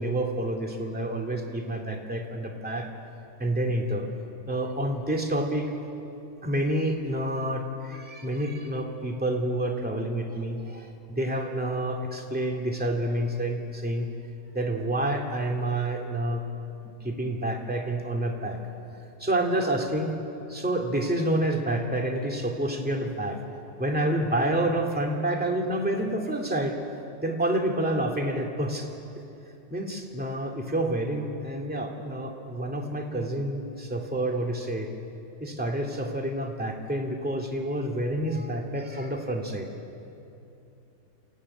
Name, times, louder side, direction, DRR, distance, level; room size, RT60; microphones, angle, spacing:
voice 1, 0.0-2.9 3.4-4.1 4.5-5.7 6.4-14.1 14.5-16.4 17.0-18.6 19.2-20.1 20.5-23.4 23.8-26.8 27.2-28.9 29.7-34.9 35.4-39.7, right 1 dB, 5° right, 1 dB, 2.2 m, -28 dB
29.5 x 15.0 x 9.7 m, 2.8 s
omnidirectional pair, 1.7 m